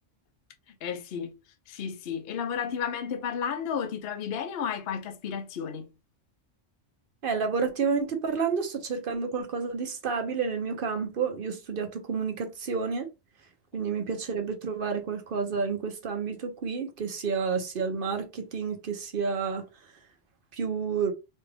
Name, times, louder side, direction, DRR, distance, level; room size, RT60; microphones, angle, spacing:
voice 1, 0.8-1.3 1.7-5.9, left 7 dB, 60° left, 0.8 m, -32 dB
voice 2, 7.2-13.1 13.7-19.6 20.5-21.1, right 5 dB, 50° right, 0.8 m, -30 dB
4.3 x 2.4 x 3.3 m
omnidirectional pair, 1.3 m